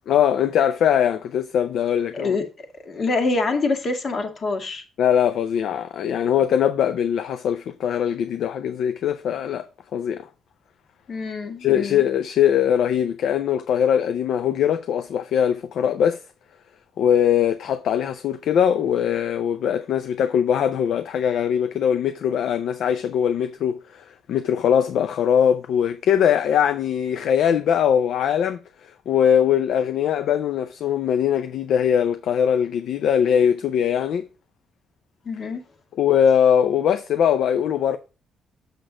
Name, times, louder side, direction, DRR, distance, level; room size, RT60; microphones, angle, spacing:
voice 1, 0.1-2.4 5.0-10.3 11.6-16.2 17.0-28.6 29.1-34.3 36.0-38.0, left 8 dB, 75° left, 0.5 m, -21 dB
voice 2, 2.9-4.8 11.1-12.0 35.3-35.6, left 3 dB, 50° left, 1.8 m, -25 dB
6.7 x 6.1 x 3.7 m
cardioid pair, 90°, 0 cm